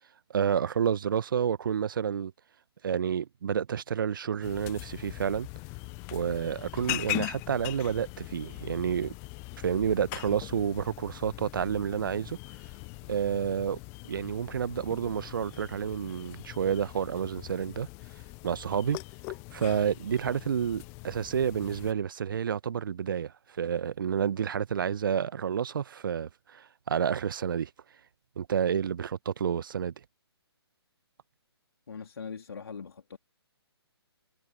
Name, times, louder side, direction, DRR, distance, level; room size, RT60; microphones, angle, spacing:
voice 1, 0.3-2.3 2.8-5.5 6.1-9.1 9.6-12.4 13.1-13.8 14.1-17.9 18.4-19.0 19.5-27.7 28.4-29.9, right 8 dB, 50° right, 1.0 m, -29 dB
sound 1, 4.4-21.9, left 30 dB, 15° left, 0.5 m, -41 dB
voice 2, 31.9-33.2, left 6 dB, 60° left, 2.8 m, -41 dB
figure-of-eight pair, 135°, 14 cm